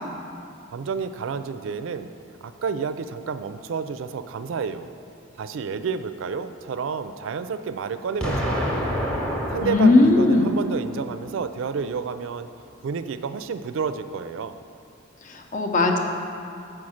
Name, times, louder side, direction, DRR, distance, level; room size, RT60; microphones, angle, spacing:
voice 1, 0.7-2.1 2.4-4.9 5.4-8.7 9.5-12.5 12.8-14.6, right 5 dB, 70° right, 11 dB, 0.4 m, -30 dB
Explosion, 8.2-11.2, equal, 5° left, 0.8 m, -28 dB
voice 2, 9.6-10.5 15.2-16.0, left 2 dB, 40° left, 3 dB, 0.6 m, -18 dB
7.2 x 4.7 x 6.3 m, 2.5 s
head